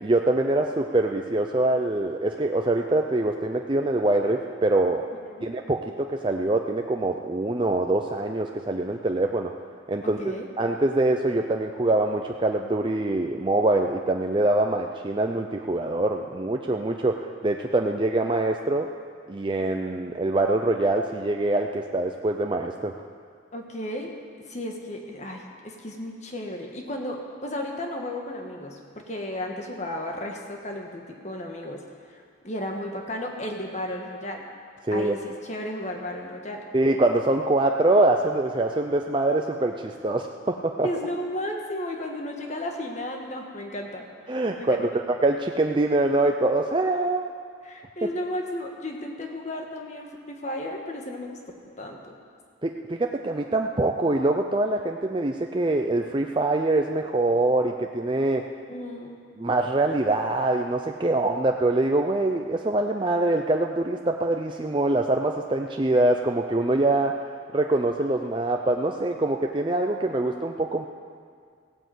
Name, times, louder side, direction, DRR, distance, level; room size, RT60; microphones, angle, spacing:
voice 1, 0.0-5.1 5.4-9.5 9.9-10.2 10.6-18.9 19.3-22.9 34.8-35.2 36.7-40.9 44.3-44.9 45.2-47.3 48.0-48.1 52.6-58.5 59.4-67.2 67.5-70.9, right 2 dB, 25° right, 3 dB, 0.5 m, -24 dB
voice 2, 5.2-5.5 10.0-10.5 23.5-24.1 24.5-31.8 32.1-34.5 34.9-36.6 40.8-45.0 47.6-51.3 51.7-52.1 58.7-59.2 69.9-70.3, left 1 dB, 35° left, 1 dB, 1.6 m, -34 dB
16.0 x 9.7 x 7.8 m, 2.1 s
head